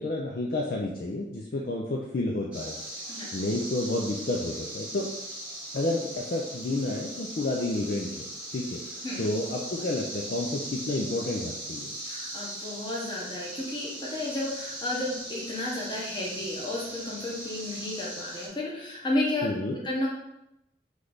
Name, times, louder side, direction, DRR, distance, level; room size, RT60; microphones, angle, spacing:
voice 1, 0.0-2.7 3.3-5.1 5.7-8.3 8.5-11.9 19.4-19.8, left 2 dB, 50° left, -1 dB, 0.4 m, -30 dB
sound 1, 2.5-18.5, right 1 dB, 5° right, 0.9 m, -39 dB
voice 2, 12.0-20.1, left 1 dB, 25° left, -4 dB, 0.9 m, -32 dB
3.2 x 3.2 x 3.9 m, 0.85 s
head